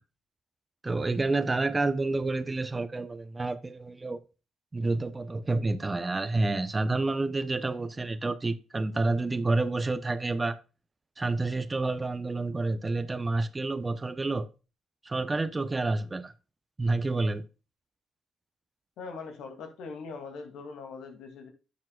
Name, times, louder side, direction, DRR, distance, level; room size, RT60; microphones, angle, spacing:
voice 1, 0.8-4.2 4.7-10.6 11.2-14.5 15.0-16.3 16.8-17.4, right 3 dB, 20° right, 0.8 m, -29 dB
voice 2, 19.0-21.5, left 4 dB, 80° left, 2.5 m, -41 dB
11.0 x 7.3 x 2.3 m
cardioid pair, 90°, 0 cm